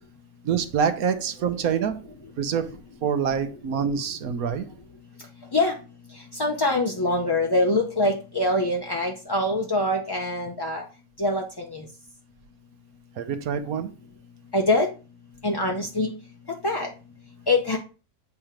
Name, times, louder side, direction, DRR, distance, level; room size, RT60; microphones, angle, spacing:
voice 1, 0.4-2.0 2.4-4.7 13.2-13.9, right 7 dB, 70° right, 9 dB, 1.3 m, -26 dB
voice 2, 6.3-10.8 11.2-11.8 14.5-14.9 15.4-16.1 16.6-16.9 17.5-17.8, left 2 dB, 25° left, 0 dB, 0.5 m, -24 dB
8.4 x 3.0 x 5.0 m, 0.33 s
omnidirectional pair, 1.6 m